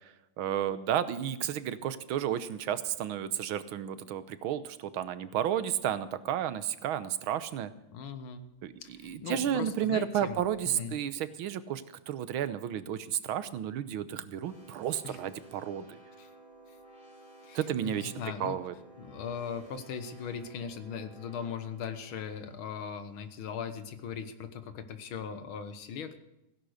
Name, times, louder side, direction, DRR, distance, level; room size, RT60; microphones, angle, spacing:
voice 1, 0.4-7.7 8.6-16.0 17.5-18.1 18.4-18.7, right 10 dB, 85° right, 14 dB, 1.7 m, -32 dB
voice 2, 7.9-8.4 8.8-11.0 15.0-15.2 16.2-16.3 17.4-18.6 19.0-26.2, left 7 dB, 85° left, 10 dB, 2.1 m, -39 dB
sound 1, 14.4-23.4, right 2 dB, 65° left, 8.3 m, -55 dB
16.5 x 10.5 x 6.5 m, 0.90 s
omnidirectional pair, 2.2 m